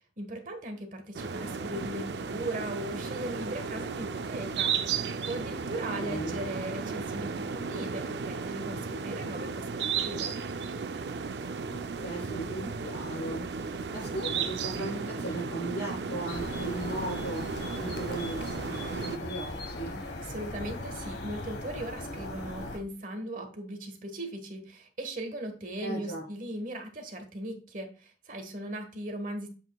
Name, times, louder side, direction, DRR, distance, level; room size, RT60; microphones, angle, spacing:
voice 1, 0.2-4.7 5.3-10.4 20.2-29.5, right 1 dB, 45° right, 6 dB, 1.4 m, -38 dB
sound 1, 1.1-19.2, right 5 dB, 65° right, 0.5 m, -34 dB
voice 2, 5.9-6.4 11.7-13.4 13.9-20.0 25.8-26.2, right 1 dB, 55° left, -7 dB, 3.1 m, -37 dB
sound 2, 16.3-22.8, left 2 dB, 70° left, 1.2 m, -39 dB
7.6 x 6.0 x 2.3 m, 0.36 s
head